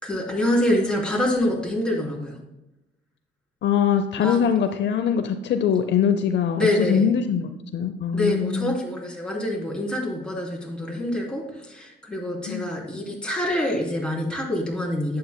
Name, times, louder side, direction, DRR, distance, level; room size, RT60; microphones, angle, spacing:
voice 1, 0.0-2.4 4.2-4.5 6.6-7.0 8.1-15.2, left 1 dB, 5° left, -3 dB, 3.2 m, -26 dB
voice 2, 3.6-8.7 12.5-12.7, left 8 dB, 65° left, 8 dB, 0.7 m, -22 dB
11.0 x 8.5 x 2.3 m, 0.94 s
cardioid pair, 90°, 20 cm